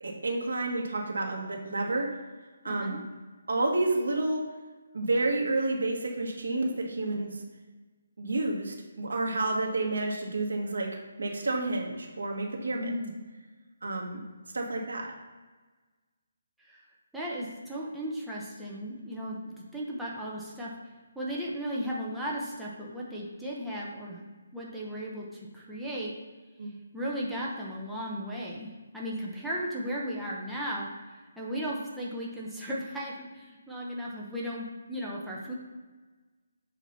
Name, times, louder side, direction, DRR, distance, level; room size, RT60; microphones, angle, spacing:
voice 1, 0.0-2.1 2.6-3.0 3.5-4.4 4.9-7.4 8.2-10.9 11.2-12.9 13.8-14.2 14.5-15.1 26.6-26.7, right 2 dB, 90° right, 0 dB, 1.6 m, -30 dB
voice 2, 2.6-3.0 12.7-13.1 16.6-16.8 17.1-20.7 21.1-24.2 24.5-26.1 26.9-35.5, equal, ahead, -7 dB, 0.7 m, -36 dB
7.3 x 2.8 x 5.5 m, 1.3 s
hypercardioid pair, 170°, 0 cm